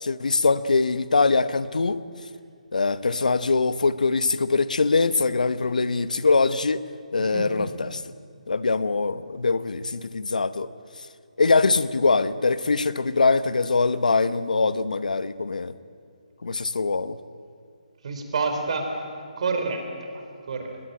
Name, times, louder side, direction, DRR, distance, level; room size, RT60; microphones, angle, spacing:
voice 1, 0.0-2.0 2.7-6.8 7.1-8.0 8.5-10.7 11.4-15.7 16.4-17.2, left 4 dB, 75° left, 15 dB, 1.0 m, -23 dB
voice 2, 7.2-7.7 18.0-19.1 19.4-20.8, right 4 dB, 50° right, 5 dB, 4.5 m, -29 dB
21.0 x 21.0 x 9.0 m, 2.3 s
figure-of-eight pair, 150°, 4 cm